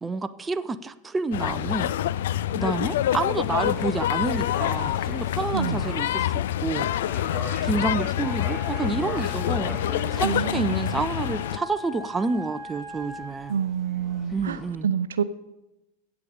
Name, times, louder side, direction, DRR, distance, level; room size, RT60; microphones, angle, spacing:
voice 1, 0.0-1.9 2.5-6.9 7.6-9.8 10.1-13.6 14.3-14.9, right 3 dB, 15° right, 10 dB, 0.5 m, -29 dB
sound 1, 1.3-11.6, left 12 dB, 55° left, 0.3 m, -27 dB
sound 2, 3.4-14.7, left 1 dB, 30° left, 4.0 m, -42 dB
voice 2, 5.5-5.9 10.2-11.1 13.5-15.2, right 7 dB, 65° right, 13 dB, 0.7 m, -28 dB
Wind instrument woodwind instrument, 8.1-13.5, left 3 dB, 75° left, 3.2 m, -41 dB
16.0 x 7.1 x 5.0 m, 0.98 s
figure-of-eight pair, 90°, 0 cm